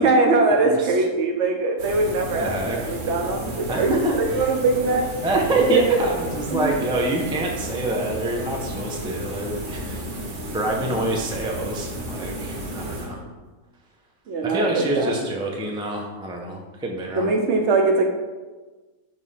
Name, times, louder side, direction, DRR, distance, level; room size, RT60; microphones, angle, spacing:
voice 1, 0.0-5.1 5.7-5.8 6.5-6.7 14.3-15.2 17.1-18.1, right 3 dB, 60° right, 3 dB, 0.9 m, -21 dB
sound 1, 1.8-13.4, right 1 dB, 80° right, 1.6 m, -33 dB
voice 2, 2.4-2.9 3.7-4.4 5.2-10.0 10.5-13.2 14.4-17.4, right 1 dB, 5° right, 0 dB, 0.3 m, -26 dB
5.4 x 3.2 x 5.5 m, 1.3 s
omnidirectional pair, 1.5 m